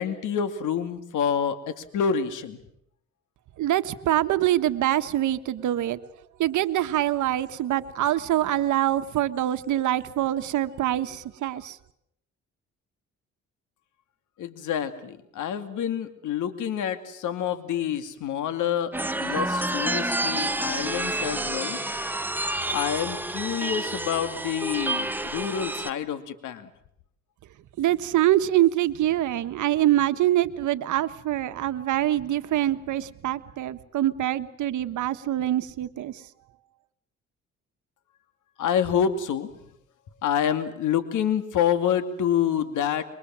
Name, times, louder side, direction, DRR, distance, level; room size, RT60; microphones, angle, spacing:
voice 1, 0.0-2.6 14.4-18.9 19.2-21.8 22.7-26.7 38.6-39.5 40.2-43.0, left 8 dB, 80° left, 10 dB, 2.4 m, -27 dB
voice 2, 3.6-6.0 6.4-11.8 27.8-36.2, right 13 dB, 75° right, 11 dB, 1.4 m, -24 dB
sound 1, 18.9-25.9, right 1 dB, 5° right, 1.3 m, -29 dB
26.5 x 23.0 x 7.5 m, 0.73 s
cardioid pair, 90°, 30 cm